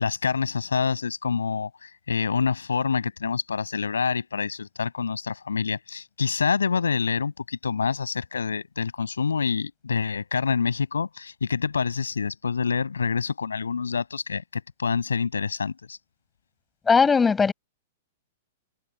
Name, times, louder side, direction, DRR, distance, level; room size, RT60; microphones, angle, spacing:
voice 1, 0.0-16.0, left 5 dB, 80° left, 7.2 m, -27 dB
voice 2, 16.9-17.5, left 5 dB, 15° left, 6.8 m, -18 dB
figure-of-eight pair, 105°, 0 cm